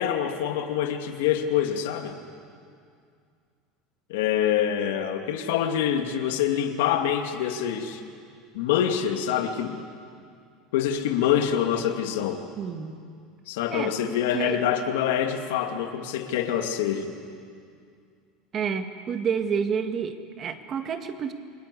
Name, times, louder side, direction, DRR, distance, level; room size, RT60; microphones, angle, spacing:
voice 1, 0.0-2.2 4.1-8.0 8.5-9.8 10.7-12.4 13.5-17.1, left 9 dB, 90° left, 5 dB, 2.3 m, -25 dB
voice 2, 12.6-13.0 13.7-13.9 14.3-14.6 18.5-21.3, right 7 dB, 30° right, 7 dB, 1.8 m, -29 dB
29.5 x 21.0 x 8.4 m, 2.3 s
supercardioid pair, 145°, 0 cm